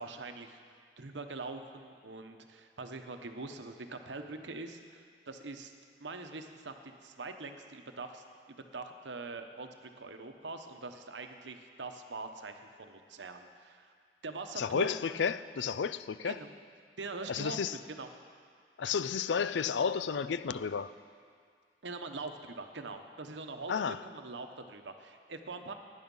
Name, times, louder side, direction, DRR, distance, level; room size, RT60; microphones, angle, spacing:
voice 1, 0.0-5.7 6.0-13.9 14.2-15.0 16.2-16.5 17.0-17.6 17.9-18.1 21.8-23.7 24.0-25.7, right 3 dB, 90° right, 1.0 m, -43 dB
voice 2, 14.6-16.4 17.3-17.7 18.8-20.9 23.7-24.0, left 6 dB, 80° left, 0.4 m, -32 dB
16.5 x 10.0 x 5.5 m
head